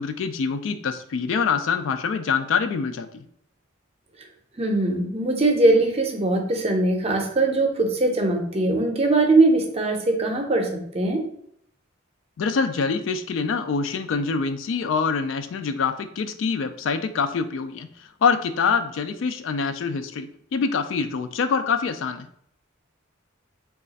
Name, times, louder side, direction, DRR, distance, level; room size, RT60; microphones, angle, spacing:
voice 1, 0.0-3.2 12.4-22.3, left 5 dB, 70° left, 9 dB, 0.3 m, -25 dB
voice 2, 4.6-11.2, right 2 dB, 30° right, 2 dB, 0.6 m, -21 dB
3.2 x 2.4 x 3.9 m, 0.68 s
head